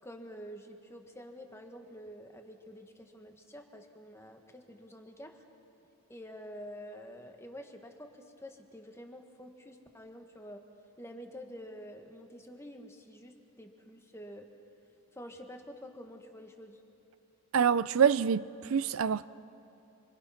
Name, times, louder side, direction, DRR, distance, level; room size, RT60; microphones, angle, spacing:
voice 1, 0.0-5.4 6.1-10.6 11.0-14.5 15.1-16.8, equal, 10° left, 1.5 m, -48 dB
voice 2, 17.5-18.4 18.7-19.3, right 7 dB, 65° right, 0.4 m, -25 dB
30.0 x 24.0 x 5.8 m
head